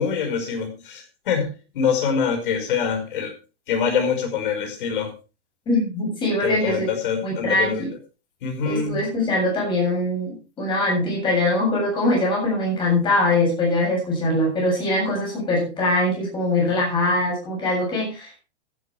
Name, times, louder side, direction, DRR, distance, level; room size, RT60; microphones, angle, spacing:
voice 1, 0.0-3.3 3.7-5.1 6.4-7.9 8.4-9.1, left 6 dB, 50° left, 3 dB, 5.6 m, -25 dB
voice 2, 5.7-6.9 7.2-7.9 8.6-18.4, left 1 dB, 15° left, -1 dB, 7.4 m, -22 dB
14.5 x 11.5 x 3.5 m, 0.32 s
hypercardioid pair, 170°, 33 cm